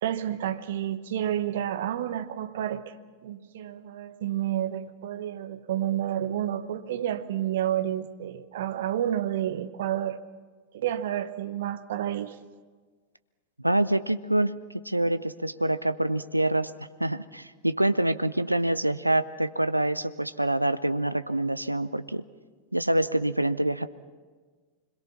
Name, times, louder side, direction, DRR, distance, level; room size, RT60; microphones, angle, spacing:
voice 1, 0.0-3.0 3.2-10.2 10.7-12.4, right 11 dB, 55° right, 1.0 m, -30 dB
voice 2, 13.6-22.2 22.7-23.9, right 1 dB, 85° right, 0.6 m, -26 dB
26.0 x 21.5 x 5.9 m
figure-of-eight pair, 90°, 0 cm